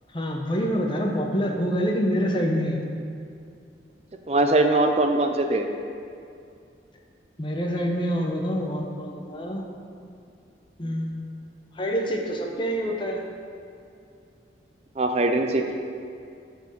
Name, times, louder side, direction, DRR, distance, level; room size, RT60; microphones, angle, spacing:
voice 1, 0.1-2.8 7.4-9.7 10.8-11.1 11.7-13.2, equal, 25° left, 1 dB, 0.8 m, -26 dB
voice 2, 4.3-5.7 15.0-15.8, right 2 dB, 35° right, 5 dB, 0.4 m, -21 dB
7.9 x 4.6 x 6.5 m, 2.4 s
head